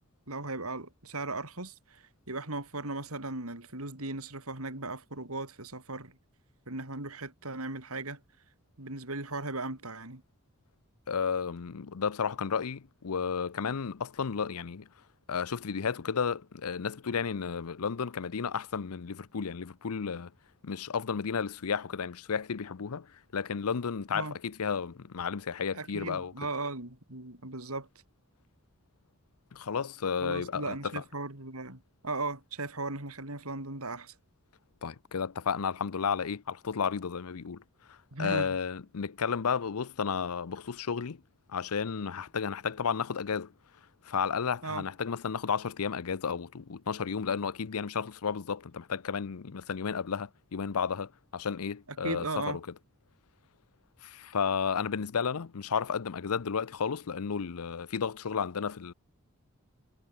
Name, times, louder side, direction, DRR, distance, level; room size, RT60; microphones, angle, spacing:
voice 1, 0.3-6.2 6.7-8.2 8.8-10.2 24.1-24.4 25.7-27.9 30.2-34.1 38.1-38.6 44.6-44.9 52.0-52.6, right 2 dB, 80° right, 5.0 m, -37 dB
voice 2, 11.1-14.9 15.3-20.3 20.6-23.1 23.3-26.3 29.5-30.9 34.8-37.6 37.9-41.2 41.5-43.5 44.0-52.6 54.0-58.9, left 6 dB, 85° left, 0.6 m, -32 dB
head